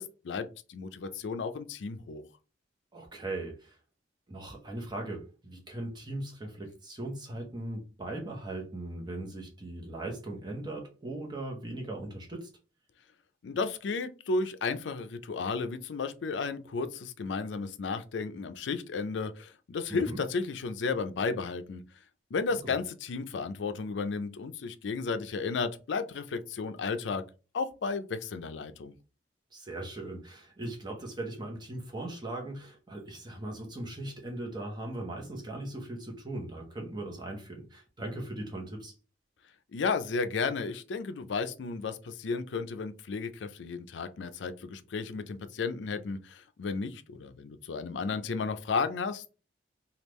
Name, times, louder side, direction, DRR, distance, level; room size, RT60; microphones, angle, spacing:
voice 1, 0.0-2.2 13.4-21.8 22.3-27.2 27.5-28.9 39.7-49.3, left 4 dB, 80° left, 0.4 m, -33 dB
voice 2, 2.9-3.8 4.3-12.5 19.9-20.2 22.5-22.8 29.5-38.9, right 1 dB, 25° right, 0.9 m, -39 dB
3.5 x 2.4 x 3.1 m
head